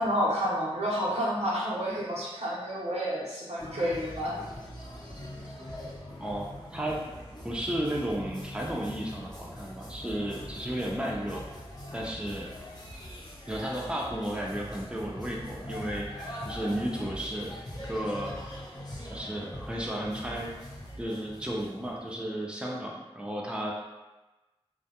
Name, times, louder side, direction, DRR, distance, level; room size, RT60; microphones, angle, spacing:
voice 1, 0.0-4.4, equal, 90° right, -7 dB, 0.7 m, -29 dB
sound 1, 3.6-22.1, left 1 dB, 40° left, 0.7 m, -42 dB
voice 2, 6.2-7.0 7.4-11.4 11.9-12.5 13.5-17.6 17.9-18.4 19.1-20.5 21.0-23.7, right 1 dB, 10° right, -3 dB, 0.5 m, -33 dB
2.2 x 2.1 x 2.8 m, 1.1 s
wide cardioid pair, 55°, 11 cm